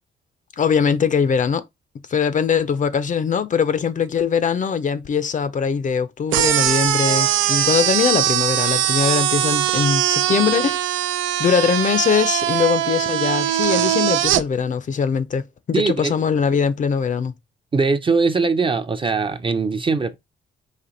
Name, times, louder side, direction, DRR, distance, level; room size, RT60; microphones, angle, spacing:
voice 1, 0.6-1.6 2.1-10.9 11.4-17.3, left 6 dB, 40° left, 0.5 m, -21 dB
sound 1, 6.3-14.4, right 12 dB, 80° right, 0.4 m, -21 dB
voice 2, 15.7-16.1 17.7-20.1, right 4 dB, 25° right, 0.6 m, -21 dB
4.3 x 2.8 x 3.9 m
cardioid pair, 90°, 20 cm